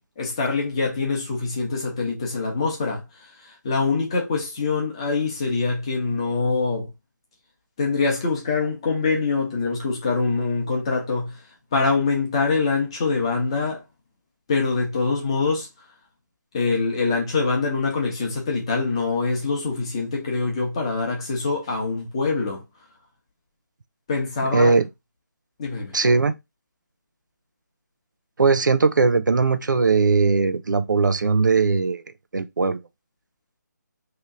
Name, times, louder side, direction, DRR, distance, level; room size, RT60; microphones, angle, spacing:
voice 1, 0.0-6.9 7.8-11.4 11.7-13.8 14.5-15.7 16.5-22.6 24.1-24.7 25.6-25.9, left 4 dB, 15° left, 0.8 m, -24 dB
voice 2, 24.5-24.9 25.9-26.3 28.4-32.0 32.3-32.8, right 4 dB, 90° right, 0.5 m, -19 dB
3.1 x 3.0 x 3.7 m
figure-of-eight pair, 175°, 10 cm